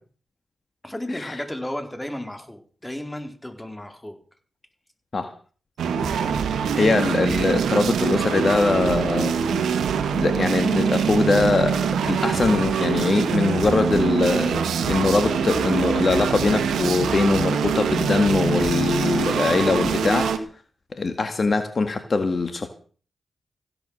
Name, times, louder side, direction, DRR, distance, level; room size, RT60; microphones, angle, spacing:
voice 1, 0.8-4.2, left 1 dB, 15° left, 5 dB, 4.3 m, -33 dB
sound 1, 5.8-20.4, right 6 dB, 85° right, 1.7 m, -24 dB
voice 2, 6.8-9.3 10.2-11.8 12.0-20.3 20.9-22.7, left 3 dB, 50° left, 8 dB, 1.9 m, -22 dB
16.0 x 10.5 x 6.6 m, 0.42 s
supercardioid pair, 45°, 0 cm